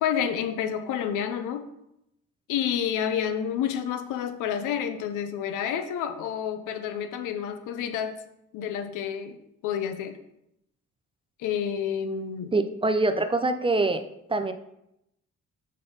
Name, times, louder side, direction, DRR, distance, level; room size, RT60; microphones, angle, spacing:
voice 1, 0.0-1.7 2.5-8.2 8.5-9.4 9.6-10.2 11.4-12.5, left 8 dB, 90° left, 9 dB, 0.6 m, -29 dB
voice 2, 12.5-14.0 14.3-14.5, right 2 dB, 20° right, 8 dB, 0.5 m, -24 dB
5.3 x 4.0 x 5.2 m, 0.81 s
cardioid pair, 90°, 30 cm